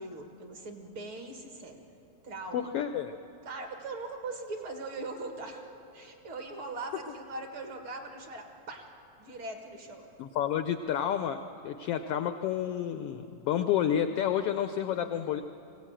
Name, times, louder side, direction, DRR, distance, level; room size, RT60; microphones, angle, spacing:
voice 1, 0.0-1.8 2.2-2.7 3.5-8.9 9.2-10.1, right 2 dB, 50° right, 4 dB, 2.3 m, -41 dB
voice 2, 2.5-3.1 10.2-15.4, left 9 dB, 85° left, 9 dB, 1.3 m, -30 dB
22.0 x 16.5 x 8.9 m, 2.8 s
omnidirectional pair, 3.4 m